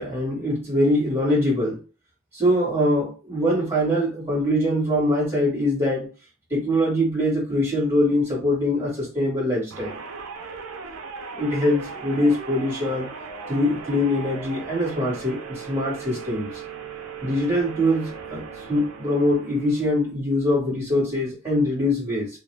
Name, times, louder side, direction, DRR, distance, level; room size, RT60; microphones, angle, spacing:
voice 1, 0.0-1.8 2.3-6.1 6.5-9.9 11.3-13.1 13.5-16.5 17.2-22.3, left 1 dB, 10° right, -5 dB, 1.3 m, -23 dB
sound 1, 9.7-20.1, right 5 dB, 85° right, 0.5 m, -38 dB
2.3 x 2.3 x 3.2 m, 0.34 s
head